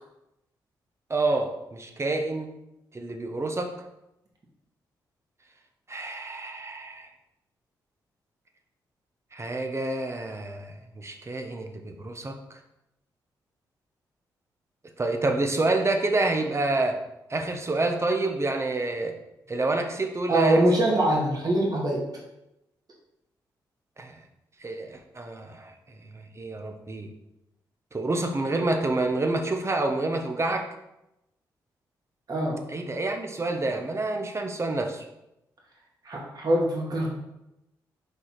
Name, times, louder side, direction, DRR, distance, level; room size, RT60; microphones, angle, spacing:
voice 1, 1.1-2.5 2.9-3.7 5.9-7.1 9.3-12.3 15.0-17.0 17.3-19.1 19.5-20.6 24.0-24.2 24.6-25.7 26.1-27.1 27.9-30.7 32.7-35.0, right 2 dB, 30° right, 4 dB, 1.1 m, -28 dB
voice 2, 20.3-22.0 32.3-32.6 36.0-37.1, right 1 dB, 50° right, -3 dB, 2.2 m, -23 dB
5.3 x 4.2 x 4.8 m, 0.89 s
supercardioid pair, 50°, 9 cm